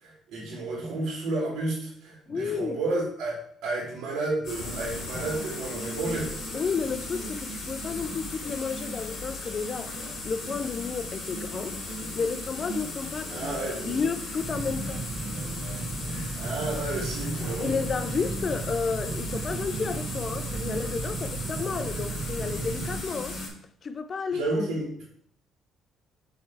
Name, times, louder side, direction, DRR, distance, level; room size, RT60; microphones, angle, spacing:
voice 1, 0.0-6.3 13.3-14.0 16.1-17.7 24.3-25.0, right 2 dB, 90° right, 2.5 m, -31 dB
voice 2, 2.3-2.8 6.5-11.8 12.2-13.6 13.8-15.0 17.6-23.4 23.8-24.4, left 5 dB, 40° left, 0.5 m, -32 dB
sound 1, 4.4-23.5, left 2 dB, 60° left, 2.8 m, -36 dB
sound 2, 14.4-23.0, right 4 dB, 45° right, 0.7 m, -35 dB
6.4 x 3.3 x 4.6 m
cardioid pair, 95°, 0 cm